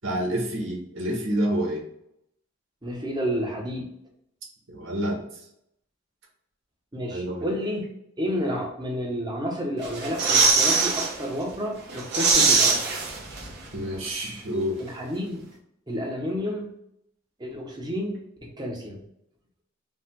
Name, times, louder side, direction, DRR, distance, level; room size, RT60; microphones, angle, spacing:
voice 1, 0.0-1.8 4.7-5.2 7.1-7.5 13.7-14.8, equal, 85° right, -2 dB, 1.6 m, -28 dB
voice 2, 2.8-3.9 6.9-7.9 8.2-12.8 14.8-15.5 15.9-16.7 17.4-19.0, equal, 20° right, 0 dB, 1.1 m, -30 dB
sound 1, 9.8-11.1 11.5-11.6 11.9-13.7 13.9-14.0, right 4 dB, 55° right, 1.4 m, -21 dB
5.2 x 2.4 x 3.7 m, 0.76 s
head